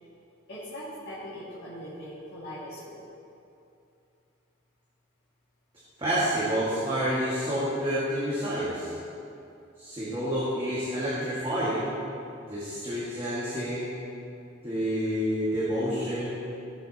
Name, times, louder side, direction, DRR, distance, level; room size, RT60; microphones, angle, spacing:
voice 1, 0.5-3.0, equal, 55° left, -12 dB, 2.2 m, -40 dB
voice 2, 6.0-8.9 9.8-11.9 12.5-13.9 14.6-16.3, equal, 25° right, -10 dB, 1.8 m, -28 dB
15.5 x 7.7 x 2.9 m, 2.6 s
head